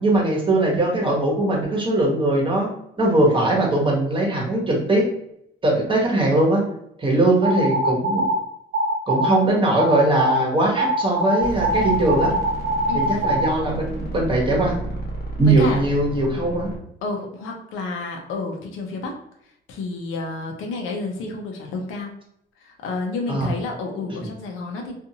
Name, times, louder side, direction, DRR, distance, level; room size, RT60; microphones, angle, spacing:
voice 1, 0.0-2.7 3.0-5.1 5.6-6.6 7.0-8.2 9.1-12.3 12.9-14.8 15.4-16.7 23.3-23.5, right 2 dB, 25° right, -2 dB, 1.0 m, -20 dB
sound 1, 7.4-8.4 8.7-9.4 9.8-10.4 10.8-13.5, right 1 dB, 85° right, 0.7 m, -22 dB
sound 2, 11.4-16.8, right 1 dB, 50° left, 0.9 m, -32 dB
voice 2, 12.9-13.3 15.6-15.8 17.0-19.1 19.7-22.1 22.6-24.9, left 3 dB, 85° left, 1 dB, 0.6 m, -30 dB
2.5 x 2.5 x 2.7 m, 0.75 s
cardioid pair, 90°, 20 cm